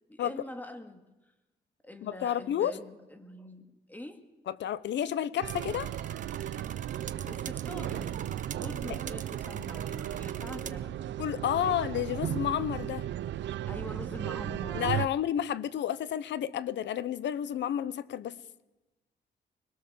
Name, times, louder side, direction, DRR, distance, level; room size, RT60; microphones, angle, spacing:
voice 1, 0.1-1.1 1.8-4.2 7.2-11.1 11.6-11.8 13.7-15.0, left 1 dB, 10° left, 2.4 m, -44 dB
voice 2, 2.0-2.7 4.6-5.9 11.2-13.1 14.7-18.4, left 10 dB, 80° left, 0.9 m, -31 dB
sound 1, 5.4-10.7, right 7 dB, 45° right, 1.1 m, -45 dB
sound 2, 5.4-15.1, right 12 dB, 80° right, 0.7 m, -35 dB
25.5 x 21.0 x 7.4 m
cardioid pair, 105°, 18 cm